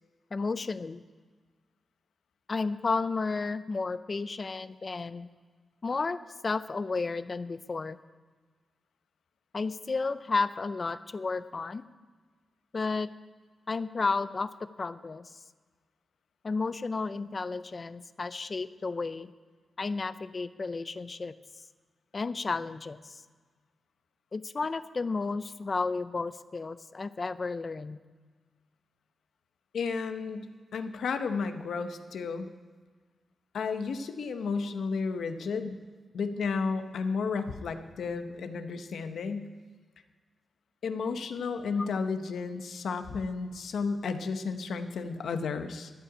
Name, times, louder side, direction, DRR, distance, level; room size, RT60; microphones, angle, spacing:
voice 1, 0.3-1.0 2.5-5.3 5.8-8.0 9.5-11.8 12.7-13.1 13.7-15.3 16.4-19.3 19.8-21.3 22.1-23.2 24.3-28.0 41.8-41.9, left 4 dB, 30° left, 14 dB, 0.4 m, -32 dB
voice 2, 29.7-32.5 33.5-35.8 36.1-39.5 40.8-45.9, left 5 dB, 85° left, 8 dB, 0.8 m, -32 dB
13.5 x 5.7 x 8.7 m, 1.5 s
wide cardioid pair, 160°, 0 cm